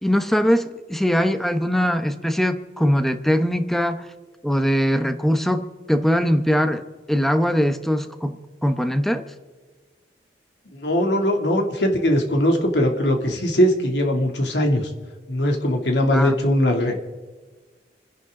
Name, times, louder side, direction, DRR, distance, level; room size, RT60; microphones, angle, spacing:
voice 1, 0.0-4.1 4.4-9.3 16.1-16.3, equal, ahead, 8 dB, 0.9 m, -21 dB
voice 2, 10.7-14.9 15.3-17.0, equal, 75° left, 2 dB, 2.8 m, -20 dB
29.5 x 10.5 x 3.8 m, 1.4 s
head